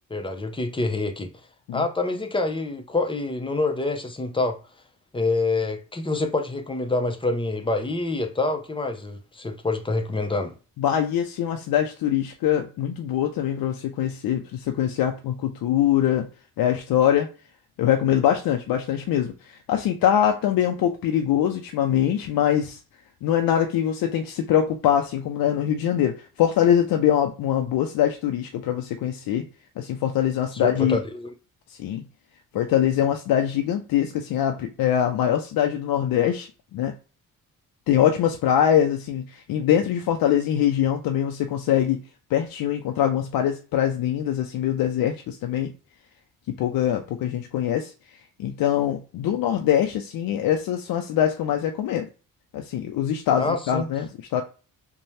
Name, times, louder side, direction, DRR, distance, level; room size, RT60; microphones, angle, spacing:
voice 1, 0.1-1.3 1.7-4.6 5.1-10.5 30.5-31.3 53.4-53.9, left 2 dB, 15° left, 0.6 m, -26 dB
voice 2, 10.8-16.3 16.6-17.3 17.8-22.8 23.2-29.5 29.8-31.0 31.7-32.0 32.5-36.9 37.9-42.0 42.3-45.7 46.5-52.1 52.5-54.4, left 10 dB, 80° left, 0.5 m, -23 dB
2.6 x 2.2 x 3.1 m
cardioid pair, 80°, 35 cm